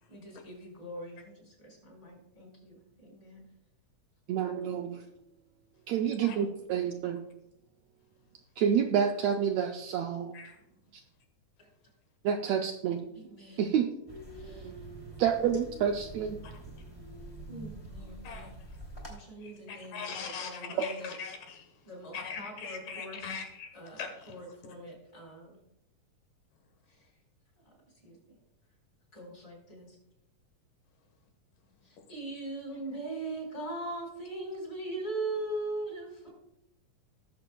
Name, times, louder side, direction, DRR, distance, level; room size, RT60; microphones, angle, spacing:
voice 1, 0.1-3.4 11.6-11.7 13.1-13.7 14.3-14.7 17.5-18.6 19.1-21.1 21.9-23.2 23.7-25.6 26.9-27.0 28.0-28.2 29.1-30.0 31.8-36.3, right 2 dB, 30° left, 4.3 m, -41 dB
voice 2, 4.3-5.0 5.9-7.3 8.6-10.3 12.2-13.0 13.6-13.9 14.4-14.7 15.2-16.4, right 8 dB, 85° right, 1.5 m, -28 dB
sound 1, 14.1-19.1, right 1 dB, 10° left, 2.3 m, -46 dB
voice 3, 19.4-21.7 22.1-24.4, left 6 dB, 85° left, 3.0 m, -41 dB
18.5 x 7.0 x 2.3 m
omnidirectional pair, 3.7 m